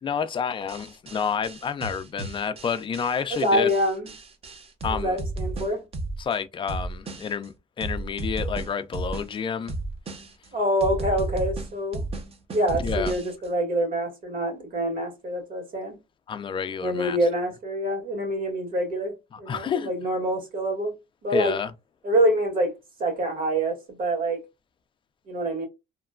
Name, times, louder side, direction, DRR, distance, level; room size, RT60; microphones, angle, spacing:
voice 1, 0.0-3.7 4.8-5.2 6.2-9.7 12.7-13.1 16.3-17.2 19.3-19.9 21.3-21.7, left 6 dB, 30° left, 0.4 m, -29 dB
sound 1, 0.7-6.3 6.7-7.5 7.8-9.3 9.7-10.5 10.8-13.5, right 2 dB, 35° right, 0.7 m, -33 dB
voice 2, 3.4-4.1 4.9-5.8 10.5-12.0 12.5-16.0 16.8-20.9 21.2-21.5 22.0-22.7 23.0-24.4 25.3-25.7, right 1 dB, 55° right, 1.7 m, -26 dB
2.9 x 2.2 x 2.4 m
cardioid pair, 110°, 17 cm